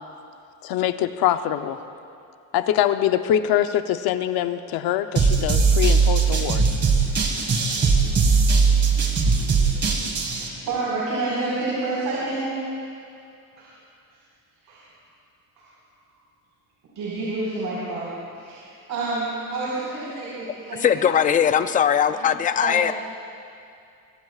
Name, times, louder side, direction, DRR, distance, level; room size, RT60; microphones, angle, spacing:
voice 1, 0.6-1.8 2.5-6.6, left 11 dB, 75° left, 9 dB, 0.9 m, -23 dB
sound 1, 5.2-10.5, right 4 dB, 30° right, 1.8 m, -19 dB
voice 2, 10.1-12.9 13.6-13.7 14.6-14.9 15.6-15.7 16.9-21.4 22.1-22.3 22.6-22.8, right 2 dB, 60° right, -7 dB, 4.7 m, -29 dB
voice 3, 20.8-22.9, left 8 dB, 25° left, 10 dB, 0.4 m, -20 dB
24.0 x 22.5 x 2.4 m, 2.5 s
cardioid pair, 160°, 36 cm